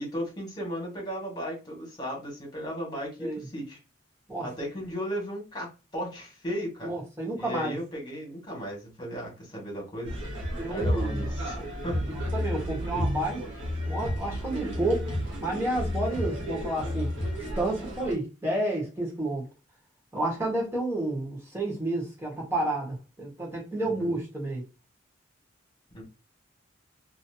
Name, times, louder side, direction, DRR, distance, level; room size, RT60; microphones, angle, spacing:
voice 1, 0.0-3.8 4.4-6.9 7.4-10.1 10.7-12.0 23.8-24.1 25.9-26.0, equal, 20° left, 1.7 m, -35 dB
voice 2, 6.8-7.8 10.5-11.2 12.3-13.4 13.8-17.1 17.6-19.4 20.1-24.6, right 1 dB, 15° right, 1.4 m, -30 dB
sound 1, 10.0-18.1, left 1 dB, 65° right, 1.4 m, -32 dB
3.0 x 2.8 x 2.8 m
head